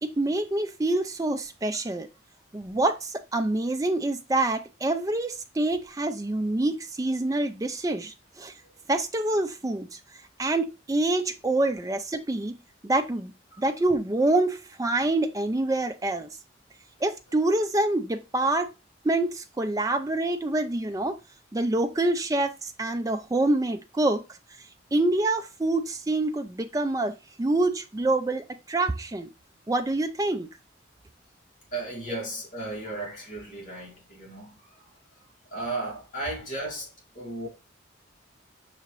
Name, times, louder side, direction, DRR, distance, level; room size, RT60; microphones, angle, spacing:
voice 1, 0.0-2.1 2.5-8.5 8.9-10.0 10.4-12.5 12.8-13.3 13.6-16.3 17.0-18.7 19.0-21.2 21.5-24.2 24.9-29.3 29.7-30.5, right 2 dB, 15° right, 0.4 m, -26 dB
voice 2, 31.7-34.8 35.5-37.5, right 2 dB, 40° left, 2.1 m, -35 dB
5.8 x 2.8 x 3.1 m
head